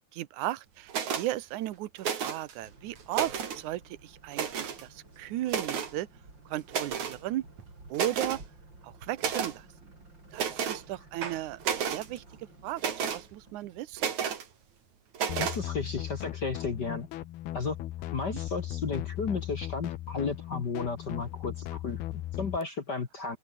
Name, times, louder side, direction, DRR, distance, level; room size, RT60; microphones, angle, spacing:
voice 1, 0.1-6.1 6.5-7.5 7.9-8.4 8.8-9.7 10.3-14.0 18.3-18.4, right 15 dB, 70° right, 1.9 m, -36 dB
sound 1, 0.9-1.3 2.0-2.5 3.0-3.6 4.3-4.8 5.5-5.9 6.7-7.2 7.6-7.7 7.9-8.4 9.2-9.5 10.3-10.8 11.2-12.1 12.8-13.2 14.0-14.4 15.1-15.6, right 7 dB, 50° right, 3.7 m, -31 dB
sound 2, 2.6-14.6, right 2 dB, 25° right, 7.4 m, -54 dB
sound 3, 15.3-22.6, left 14 dB, 75° left, 3.1 m, -37 dB
voice 2, 15.4-17.1 17.5-17.8 18.1-23.4, left 4 dB, 45° left, 1.4 m, -33 dB
open air
omnidirectional pair, 4.7 m